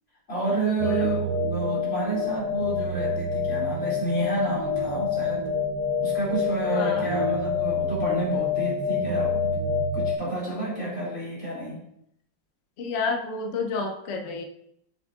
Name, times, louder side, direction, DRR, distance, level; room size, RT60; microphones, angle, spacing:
voice 1, 0.3-5.4 6.0-9.5 9.9-11.8, right 2 dB, 35° left, -7 dB, 2.7 m, -30 dB
sound 1, 0.8-10.1, left 4 dB, 65° right, 1.1 m, -27 dB
voice 2, 6.7-7.1 12.8-14.4, left 4 dB, 60° left, 2 dB, 0.8 m, -30 dB
7.5 x 6.0 x 2.4 m, 0.74 s
omnidirectional pair, 2.0 m